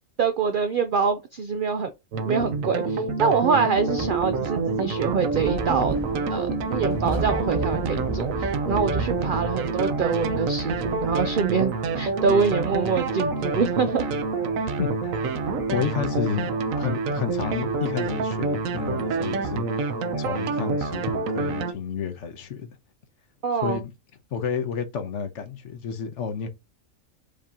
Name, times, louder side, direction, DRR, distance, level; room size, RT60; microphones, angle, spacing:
voice 1, 0.2-1.9 2.3-6.0 6.3-14.1 23.4-23.8, right 5 dB, 65° right, 0.5 m, -25 dB
sound 1, 2.1-21.7, right 4 dB, 80° right, 1.1 m, -27 dB
sound 2, 3.9-19.7, right 3 dB, 25° right, 0.7 m, -37 dB
voice 2, 14.8-15.2 15.7-16.5 16.8-19.7 20.2-22.8 23.6-23.9 24.3-26.5, left 7 dB, 65° left, 1.1 m, -30 dB
5.1 x 2.8 x 3.6 m
omnidirectional pair, 1.4 m